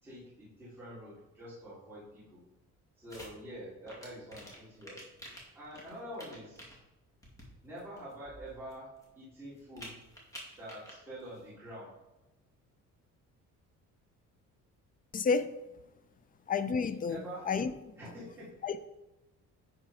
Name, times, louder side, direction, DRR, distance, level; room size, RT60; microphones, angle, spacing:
voice 1, 0.0-2.4 3.0-5.0 5.5-6.7 7.6-10.0 10.6-12.0 17.0-17.5 18.0-18.5, equal, 5° right, -11 dB, 3.3 m, -46 dB
sound 1, 3.1-3.3 3.8-6.8 7.2-7.5 7.8-9.0 9.6-10.9 11.2-11.4, equal, 10° left, 2.3 m, -49 dB
voice 2, 15.1-15.5 16.5-17.7 18.6-18.9, left 5 dB, 30° left, 12 dB, 0.5 m, -30 dB
10.5 x 4.5 x 4.9 m, 1.0 s
cardioid pair, 145°, 30 cm